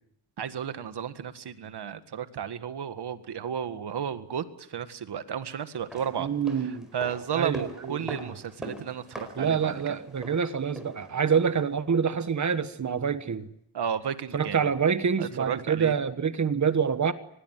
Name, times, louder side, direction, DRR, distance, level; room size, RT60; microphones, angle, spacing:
voice 1, 0.4-6.3 6.9-9.9 13.7-14.7 15.2-16.0, right 8 dB, 60° right, 11 dB, 1.8 m, -33 dB
sound 1, 5.7-11.7 12.0-12.1, equal, ahead, 4.7 m, -44 dB
voice 2, 6.2-6.9 7.4-8.2 9.4-13.5 14.3-17.1, right 6 dB, 40° right, 12 dB, 1.5 m, -26 dB
24.5 x 21.0 x 9.5 m, 0.74 s
wide cardioid pair, 165°, 46 cm